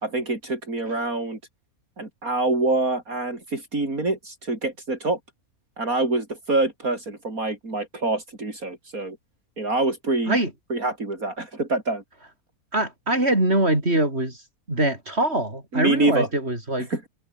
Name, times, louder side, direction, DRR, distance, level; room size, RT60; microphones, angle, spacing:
voice 1, 0.0-1.4 2.0-5.2 5.8-9.2 9.6-10.4 10.7-12.0 15.7-16.3 16.9-17.1, right 2 dB, 70° right, 5.6 m, -25 dB
voice 2, 12.7-14.4 14.7-16.9, right 1 dB, 45° right, 7.9 m, -23 dB
omnidirectional pair, 1.6 m